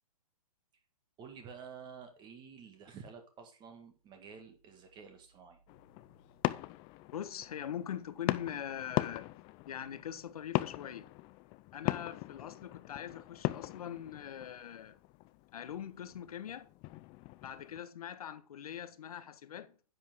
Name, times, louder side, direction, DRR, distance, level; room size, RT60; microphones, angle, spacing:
voice 1, 1.2-5.6, right 6 dB, 20° right, 1.8 m, -51 dB
sound 1, 5.7-17.8, left 20 dB, 25° left, 0.5 m, -40 dB
voice 2, 7.1-9.3 9.7-11.1 11.7-15.0 15.5-16.7 17.4-19.7, left 9 dB, 65° left, 1.3 m, -42 dB
10.0 x 7.5 x 3.6 m
hypercardioid pair, 135°, 20 cm